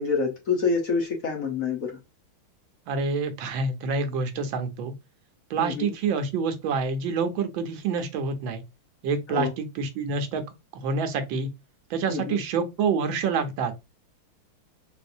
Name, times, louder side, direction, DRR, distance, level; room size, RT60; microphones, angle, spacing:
voice 1, 0.0-1.9 5.6-5.9 9.3-9.5 12.1-12.4, left 4 dB, 55° left, 1.0 m, -27 dB
voice 2, 2.9-4.9 5.5-8.6 9.0-10.4 10.7-11.5 11.9-13.7, right 5 dB, 75° right, 1.5 m, -27 dB
4.2 x 2.6 x 2.6 m
omnidirectional pair, 2.3 m